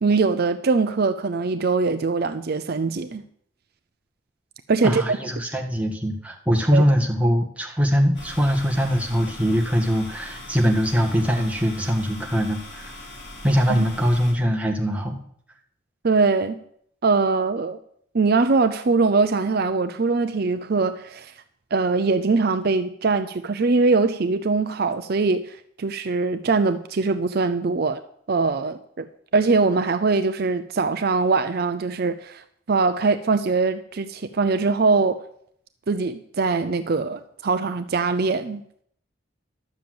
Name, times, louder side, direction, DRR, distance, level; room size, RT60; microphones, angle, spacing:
voice 1, 0.0-3.2 4.7-5.2 6.7-6.8 13.7-13.8 16.0-16.6 17.0-17.8 18.1-21.3 21.7-28.0 28.3-29.1 29.3-35.2 35.9-38.6, right 4 dB, 50° right, 0.5 m, -22 dB
voice 2, 4.8-12.9 13.4-15.1, equal, 5° right, 1.6 m, -22 dB
sound 1, 8.1-14.3, left 1 dB, 60° left, 4.2 m, -40 dB
11.5 x 7.0 x 7.8 m
head